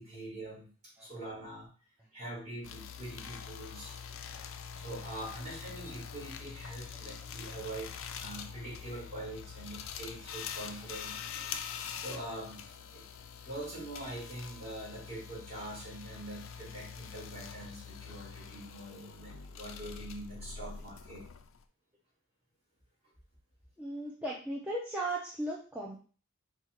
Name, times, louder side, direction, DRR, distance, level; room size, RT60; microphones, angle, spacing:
voice 1, 0.0-1.7 2.1-3.9 4.8-11.2 12.0-13.1 13.4-21.3, right 1 dB, 30° right, -5 dB, 2.0 m, -44 dB
sound 1, 2.6-21.6, left 7 dB, 70° left, 0.4 m, -44 dB
voice 2, 23.8-26.0, right 1 dB, 5° right, -4 dB, 0.5 m, -37 dB
4.4 x 2.4 x 4.4 m, 0.39 s
head